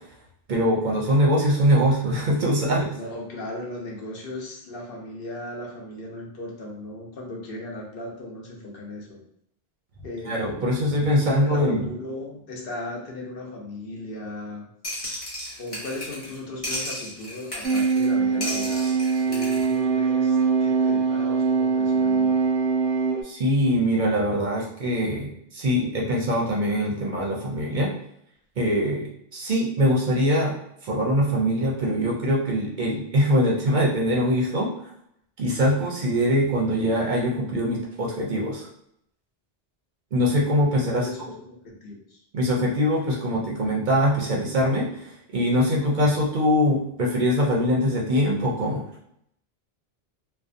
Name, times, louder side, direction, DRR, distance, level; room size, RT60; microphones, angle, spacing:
voice 1, 0.5-3.0 10.3-11.8 23.2-27.9 28.6-30.6 30.8-34.7 35.4-38.7 40.1-41.1 42.3-48.8, equal, 55° right, -2 dB, 0.6 m, -23 dB
voice 2, 2.9-9.2 10.0-10.4 11.1-14.7 15.6-19.0 19.2-22.5 40.7-41.3 41.6-42.2, left 2 dB, 65° left, -1 dB, 0.8 m, -37 dB
sound 1, 14.8-16.4 16.6-18.1 18.4-19.7, left 1 dB, 35° left, 0.8 m, -34 dB
sound 2, 17.6-23.2, right 5 dB, 90° right, 0.8 m, -22 dB
2.6 x 2.1 x 2.4 m, 0.74 s
omnidirectional pair, 1.1 m